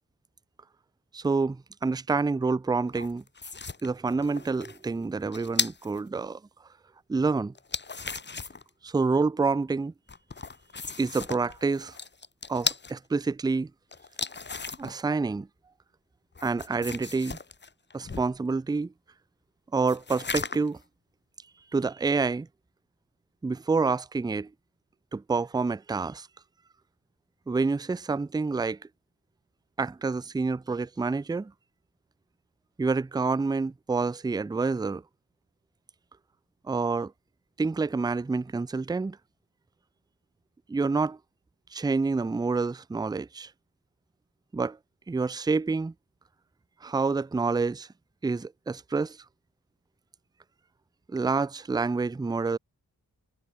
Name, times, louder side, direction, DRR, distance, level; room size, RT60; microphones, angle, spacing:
voice 1, 1.1-3.2 3.8-6.4 7.1-7.5 8.8-9.9 11.0-11.9 12.5-13.7 14.8-15.5 16.4-17.4 17.9-18.9 19.7-20.8 21.7-22.5 23.4-24.5 25.1-26.3 27.5-28.8 29.8-31.5 32.8-35.0 36.7-37.1 37.6-39.2 40.7-41.2 41.7-43.5 44.5-44.8 45.1-45.9 46.8-47.9 48.2-49.2 51.1-52.6, right 4 dB, 10° right, 0.4 m, -28 dB
sound 1, 2.9-6.0 7.6-8.7 10.1-12.9 13.9-15.0 16.4-18.4 19.9-20.8, left 4 dB, 30° left, 1.1 m, -36 dB
wide cardioid pair, 110°, 36 cm